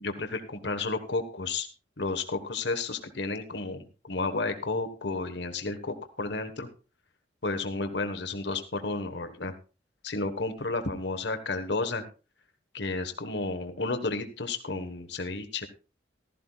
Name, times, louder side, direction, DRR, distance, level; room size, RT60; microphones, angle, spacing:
voice 1, 0.0-1.7 2.0-6.7 7.4-9.5 10.0-12.0 12.7-15.7, left 3 dB, 65° left, 8 dB, 1.4 m, -32 dB
15.0 x 13.5 x 2.4 m, 0.32 s
head